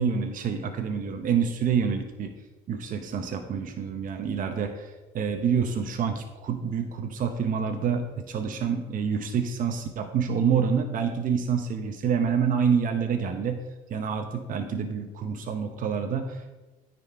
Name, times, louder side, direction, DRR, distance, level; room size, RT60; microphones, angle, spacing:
voice 1, 0.0-2.3 2.7-13.6 13.9-16.6, right 6 dB, 50° right, 6 dB, 0.8 m, -27 dB
9.8 x 4.2 x 4.5 m, 1.2 s
supercardioid pair, 75°, 18 cm